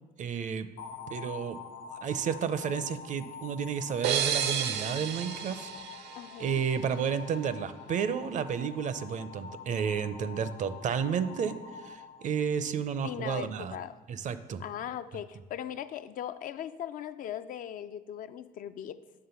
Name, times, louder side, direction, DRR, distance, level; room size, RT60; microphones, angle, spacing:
voice 1, 0.2-0.7 1.1-1.6 1.9-5.7 6.4-13.8 14.1-14.6, right 7 dB, 45° right, 13 dB, 0.5 m, -32 dB
sound 1, 0.8-12.9, left 5 dB, 80° left, 0.8 m, -46 dB
sound 2, 4.0-6.8, right 9 dB, 80° right, 0.7 m, -32 dB
voice 2, 6.2-6.6 13.0-14.0 14.6-19.0, left 10 dB, 55° left, 12 dB, 0.4 m, -39 dB
8.8 x 3.6 x 6.9 m, 1.2 s
cardioid pair, 110°, 17 cm